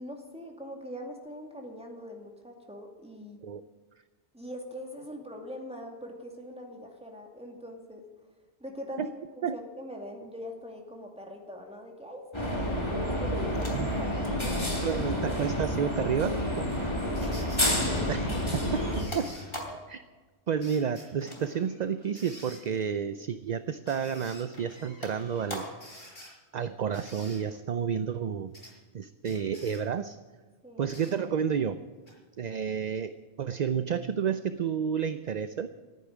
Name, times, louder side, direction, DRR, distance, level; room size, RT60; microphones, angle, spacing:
voice 1, 0.0-3.4 4.3-8.0 8.6-12.6 12.9-14.9 16.8-17.5 17.9-18.2 19.7-19.9 30.6-30.9, equal, 5° right, 1 dB, 2.3 m, -42 dB
sound 1, 12.3-19.0, left 1 dB, 25° left, 2.8 m, -29 dB
sound 2, 13.6-17.6 17.9-20.0 21.2-22.2 22.6-22.9 23.5-24.2 24.5-25.9 27.1-27.2, left 1 dB, 55° left, 3.4 m, -45 dB
voice 2, 14.8-16.7 18.1-18.2 18.7-19.3 19.9-20.1 20.5-25.7 26.5-28.6 28.9-30.2 30.8-31.8 32.4-33.1 33.4-35.7, right 7 dB, 50° right, 12 dB, 0.5 m, -30 dB
sound 3, 17.1-17.8 19.0-19.5 20.6-21.1 22.2-22.6 23.9-24.5 25.6-26.3 26.9-27.4 28.5-28.7 29.2-29.8 30.9-31.2 32.1-32.2, equal, 75° left, 6.0 m, -48 dB
13.5 x 9.4 x 9.9 m, 1.3 s
omnidirectional pair, 1.2 m